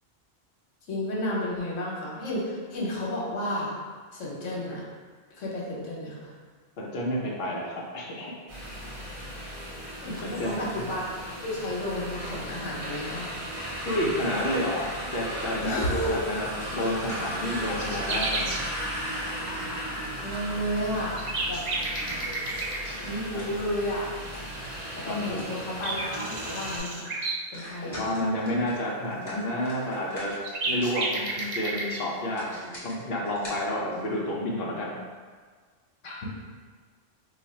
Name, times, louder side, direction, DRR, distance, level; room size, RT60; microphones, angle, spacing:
voice 1, 0.9-3.7 4.1-4.8 5.4-6.3 10.0-11.0 11.4-13.3 15.6-16.2 20.2-21.2 21.5-21.6 23.0-24.1 25.0-27.0 27.5-28.0 36.0-36.3, equal, 80° left, -4 dB, 1.2 m, -32 dB
voice 2, 6.8-8.4 10.2-10.8 13.8-18.5 23.3-23.5 25.1-25.5 27.8-30.3 30.6-35.0, left 1 dB, 55° left, -3 dB, 0.7 m, -30 dB
sound 1, 8.5-26.8, equal, 30° right, 0.8 m, -36 dB
sound 2, 16.0-19.6 20.0-24.7 25.0-25.6 25.9-26.0 26.2-26.7 27.0-27.2 27.5-34.3, equal, 30° left, 1.0 m, -47 dB
sound 3, 16.4-16.5 16.9-17.0 17.2-18.6 20.5-20.6 21.0-23.0 25.1-25.2 25.6-27.4 29.9-30.0 30.2-32.0, right 2 dB, 65° right, 0.4 m, -32 dB
2.8 x 2.4 x 4.2 m, 1.6 s
omnidirectional pair, 1.3 m